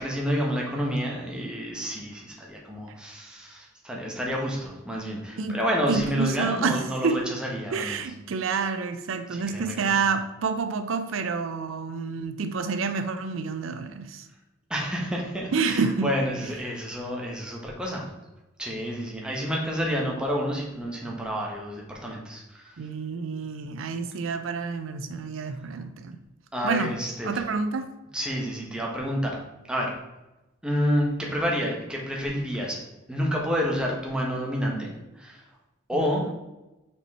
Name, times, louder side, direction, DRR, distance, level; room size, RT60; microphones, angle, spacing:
voice 1, 0.0-8.1 9.3-10.0 14.7-18.1 18.6-22.8 25.7-25.8 26.5-27.4 28.1-29.4 29.7-29.9 30.6-32.8 33.1-35.4 35.9-36.2, equal, 5° right, -2 dB, 1.2 m, -29 dB
voice 2, 5.9-6.8 7.0-7.2 7.7-14.3 15.5-16.1 22.8-26.2 26.6-26.9 27.2-27.9 36.0-36.1, right 5 dB, 80° right, 9 dB, 0.5 m, -28 dB
5.4 x 4.6 x 4.1 m, 1.0 s
head